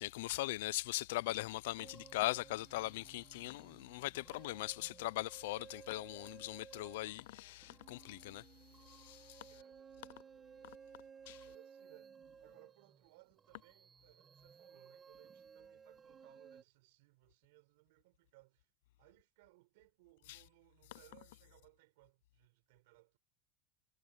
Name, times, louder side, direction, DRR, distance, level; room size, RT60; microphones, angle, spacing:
voice 1, 0.0-8.4 8.9-9.5 11.3-11.5 20.3-20.4, left 18 dB, 70° left, 0.4 m, -40 dB
sound 1, 1.8-16.6, right 6 dB, 20° right, 1.8 m, -58 dB
voice 2, 9.5-18.7 19.0-23.2, right 23 dB, 65° right, 5.6 m, -66 dB
supercardioid pair, 165°, 0 cm